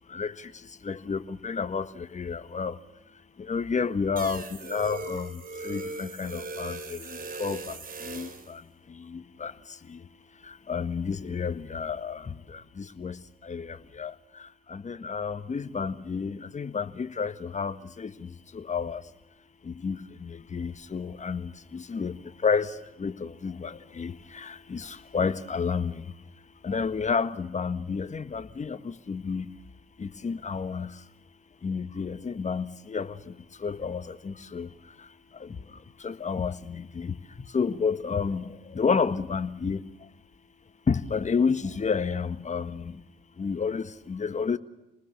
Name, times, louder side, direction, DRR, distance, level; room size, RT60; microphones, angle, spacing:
voice 1, 0.8-2.7 3.5-4.4 4.7-5.3 5.6-7.0 7.4-7.6 8.1-8.3 9.4-9.5 10.7-12.2 13.0-13.1 13.5-14.1 14.7-18.1 18.5-19.0 19.8-20.0 20.5-22.1 22.4-22.7 23.0-24.1 24.4-24.9 25.1-25.9 26.6-28.8 29.1-29.5 30.0-30.9 31.6-33.1 33.6-34.7 36.0-37.1 37.5-38.5 38.7-39.8 40.9-42.8 43.4-44.6, left 5 dB, 40° left, 1.5 m, -30 dB
sound 1, 4.2-8.5, right 3 dB, 50° right, 3.8 m, -39 dB
27.5 x 20.0 x 7.0 m
hypercardioid pair, 45°, 19 cm